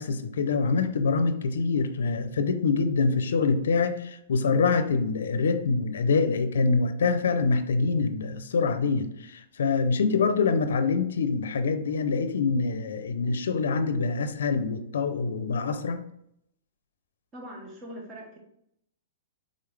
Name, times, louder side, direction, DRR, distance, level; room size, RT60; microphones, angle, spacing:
voice 1, 0.0-16.0, left 4 dB, 85° left, 10 dB, 0.5 m, -25 dB
voice 2, 17.3-18.4, equal, 20° right, -1 dB, 1.0 m, -41 dB
3.7 x 3.6 x 3.3 m, 0.74 s
hypercardioid pair, 150°, 0 cm